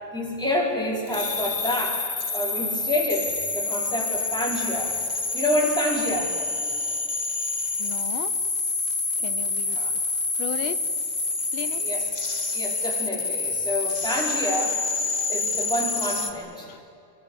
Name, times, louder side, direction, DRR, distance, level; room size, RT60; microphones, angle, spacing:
voice 1, 0.1-2.0 2.3-4.9 5.3-6.3 9.8-9.9 11.7-12.1 12.5-14.8 15.3-16.7, left 1 dB, ahead, -3 dB, 5.2 m, -28 dB
sound 1, 1.1-16.3, left 3 dB, 25° left, 1.3 m, -27 dB
voice 2, 7.8-8.3 9.2-9.9 10.3-10.8 11.5-11.8 16.7-16.8, left 11 dB, 90° left, 13 dB, 1.7 m, -35 dB
26.0 x 23.5 x 8.4 m, 2.6 s
omnidirectional pair, 2.2 m